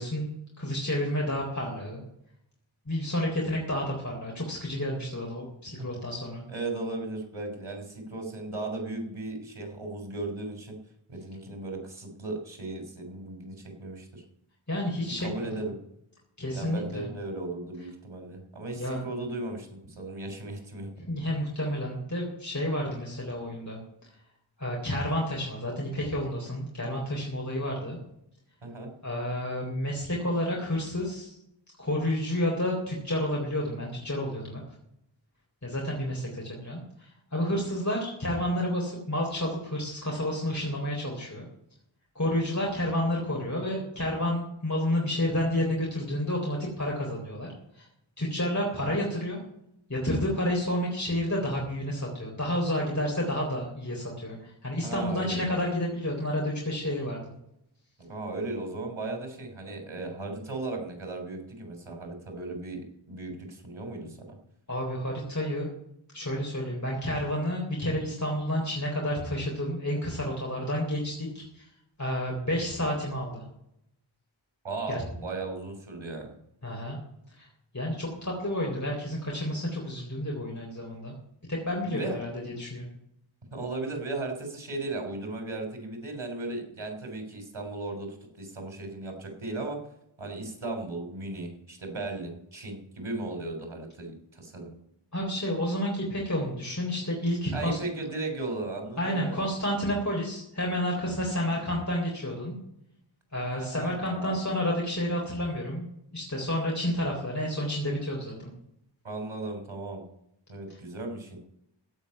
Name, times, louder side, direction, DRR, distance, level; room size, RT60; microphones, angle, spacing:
voice 1, 0.0-2.0 2.9-6.4 14.7-15.5 16.4-17.1 18.8-19.0 21.1-23.8 24.6-28.0 29.0-31.3 31.8-34.6 35.6-41.5 42.2-47.9 48.2-49.4 49.9-57.2 64.7-65.7 66.1-71.7 72.0-73.4 74.9-75.0 76.6-77.0 77.4-77.5 77.7-81.1 81.5-82.9 95.1-97.8 99.0-102.6 103.3-108.3, left 1 dB, 35° left, -2 dB, 3.9 m, -30 dB
voice 2, 6.5-10.8 11.1-14.2 15.2-15.8 16.5-20.9 28.6-28.9 48.7-49.0 54.8-55.5 58.0-64.4 74.6-76.4 81.8-82.2 83.5-89.8 90.2-94.7 97.5-99.5 103.5-104.4 109.0-110.0 110.5-111.4, right 2 dB, 90° right, 3 dB, 3.6 m, -36 dB
16.0 x 5.3 x 9.4 m, 0.76 s
wide cardioid pair, 50°, 48 cm